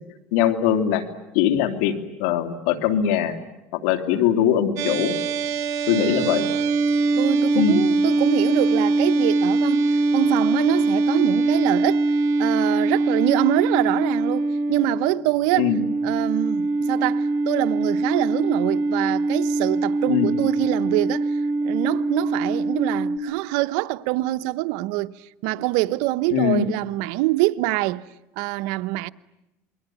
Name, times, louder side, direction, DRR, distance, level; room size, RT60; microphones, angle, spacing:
voice 1, 0.3-1.0 1.3-3.4 3.7-5.2 5.9-6.5 7.5-7.8 15.6-15.8 20.1-20.3 26.3-26.7, left 9 dB, 85° left, 3.0 m, -21 dB
sound 1, 4.8-23.2, right 3 dB, 55° right, 3.6 m, -22 dB
voice 2, 5.9-6.6 7.2-12.1 12.4-15.7 16.0-28.0 28.4-29.1, right 18 dB, 80° right, 1.0 m, -25 dB
28.0 x 23.0 x 9.2 m
cardioid pair, 125°, 6 cm